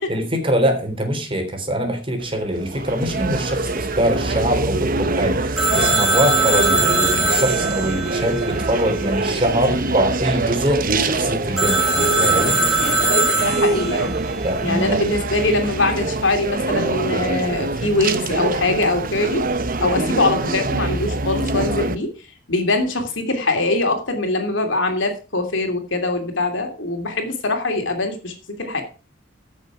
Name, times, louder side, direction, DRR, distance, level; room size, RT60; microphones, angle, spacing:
voice 1, 0.1-12.6 14.4-15.0, equal, 30° right, 4 dB, 3.5 m, -23 dB
sound 1, 2.2-21.9, right 3 dB, 45° right, 1.0 m, -24 dB
Telephone, 5.6-9.2 11.6-14.1, right 2 dB, ahead, 3.9 m, -21 dB
voice 2, 13.4-14.2 14.6-19.4 19.8-22.1 22.5-28.8, left 2 dB, 75° left, 5 dB, 2.9 m, -22 dB
15.5 x 6.8 x 4.9 m, 0.34 s
head